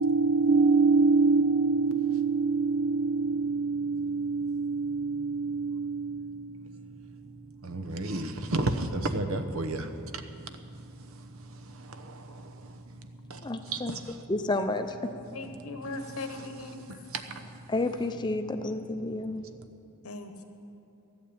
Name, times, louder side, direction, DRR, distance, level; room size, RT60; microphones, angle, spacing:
voice 1, 0.0-6.6 7.6-10.2 11.8-12.7 13.3-13.4 13.7-14.1 17.1-17.5, right 3 dB, 70° right, 8 dB, 0.9 m, -27 dB
voice 2, 13.4-14.0 14.3-15.1 17.7-19.4, left 2 dB, 20° left, 8 dB, 0.6 m, -30 dB
voice 3, 15.3-16.8 20.0-20.4, left 2 dB, 85° left, 6 dB, 1.3 m, -39 dB
13.0 x 8.5 x 8.6 m, 2.7 s
head